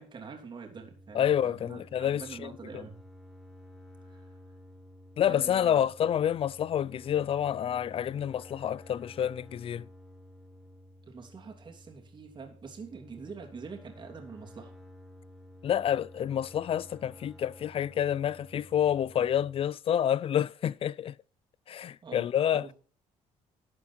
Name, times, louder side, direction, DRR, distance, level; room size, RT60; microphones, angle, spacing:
voice 1, 0.0-3.0 4.1-4.2 5.2-5.9 11.1-14.7 22.0-22.7, right 5 dB, 35° right, 3.1 m, -45 dB
sound 1, 0.7-19.6, left 1 dB, 5° left, 1.9 m, -52 dB
voice 2, 1.1-2.9 5.2-9.9 15.6-21.1 21.7-22.7, left 9 dB, 45° left, 0.4 m, -28 dB
13.0 x 8.7 x 4.5 m
cardioid pair, 115°, 13 cm